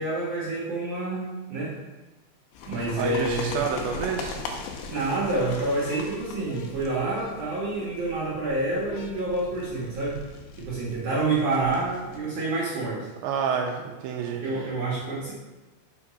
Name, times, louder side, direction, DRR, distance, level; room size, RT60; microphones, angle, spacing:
voice 1, 0.0-1.8 2.7-3.6 4.9-10.2 10.6-13.1 14.4-15.3, right 2 dB, 70° right, -5 dB, 1.9 m, -28 dB
sound 1, 2.5-12.2, left 4 dB, 85° left, 2.3 m, -39 dB
voice 2, 3.0-4.4 13.2-14.6, right 6 dB, 90° right, 2 dB, 2.6 m, -29 dB
6.9 x 4.9 x 5.6 m, 1.2 s
omnidirectional pair, 5.7 m